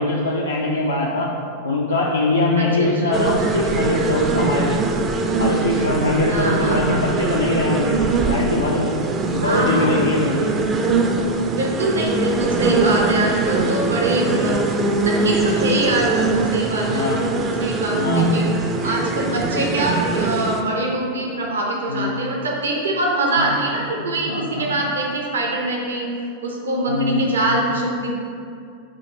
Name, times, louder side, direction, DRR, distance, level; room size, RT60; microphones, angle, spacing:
voice 1, 0.0-1.3 1.6-4.8 5.4-8.0 8.3-9.0 9.3-10.5 14.2-14.5 16.9-17.2 18.0-18.3 21.9-22.1 23.4-23.5 23.9-24.7 26.9-27.2 27.5-27.6, left 2 dB, 75° left, -3 dB, 0.4 m, -22 dB
voice 2, 2.6-3.2 6.2-7.1 9.4-10.0 11.5-14.7 14.9-18.6 18.8-26.1 26.4-28.1, right 2 dB, 70° right, -1 dB, 0.6 m, -23 dB
sound 1, 3.1-20.6, right 3 dB, 25° right, 0.4 m, -22 dB
4.8 x 2.5 x 4.1 m, 2.4 s
figure-of-eight pair, 90°, 0 cm